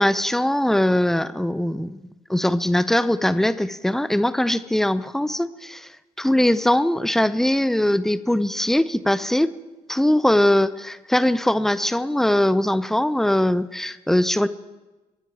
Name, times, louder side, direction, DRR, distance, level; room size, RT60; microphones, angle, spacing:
voice 1, 0.0-2.0 2.3-5.9 6.2-9.5 9.9-14.5, left 1 dB, ahead, 16 dB, 0.6 m, -21 dB
22.0 x 9.3 x 4.7 m, 1.1 s
figure-of-eight pair, 45°, 19 cm